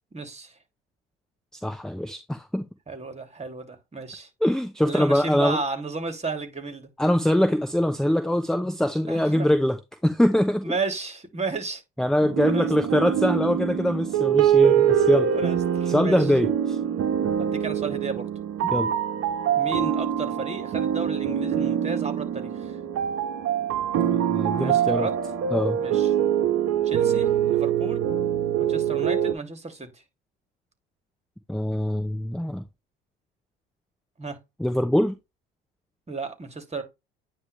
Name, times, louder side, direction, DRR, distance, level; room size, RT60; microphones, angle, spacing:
voice 1, 0.1-0.6 2.9-4.3 4.8-6.9 9.1-9.5 10.6-11.8 12.4-12.7 15.1-16.2 17.4-18.3 19.5-22.8 24.5-25.1 25.8-26.1 26.8-28.0 28.6-30.0 34.2-34.4 36.1-36.8, right 3 dB, 20° right, 2.9 m, -33 dB
voice 2, 1.5-2.6 4.4-5.6 7.0-9.8 10.0-10.6 12.0-15.3 15.9-16.8 18.7-18.9 24.3-25.1 25.5-25.8 31.5-32.6 34.6-35.1, equal, ahead, 1.0 m, -23 dB
sound 1, 12.2-29.3, right 9 dB, 50° right, 1.4 m, -24 dB
9.6 x 3.3 x 3.3 m
hypercardioid pair, 70°, 30 cm